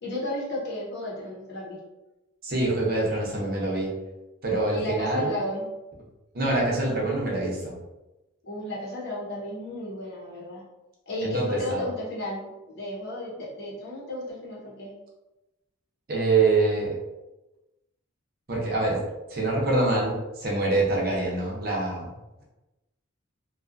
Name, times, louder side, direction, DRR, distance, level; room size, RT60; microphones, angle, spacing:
voice 1, 0.0-1.8 4.7-5.6 8.4-10.6 11.1-12.5 12.7-14.9, left 1 dB, 55° left, -5 dB, 0.8 m, -33 dB
voice 2, 2.4-3.9 4.4-5.4 6.3-7.7 11.2-11.8 16.1-17.0 18.5-19.0 19.3-22.1, right 2 dB, 45° right, -3 dB, 0.6 m, -25 dB
2.6 x 2.3 x 2.5 m, 1.0 s
head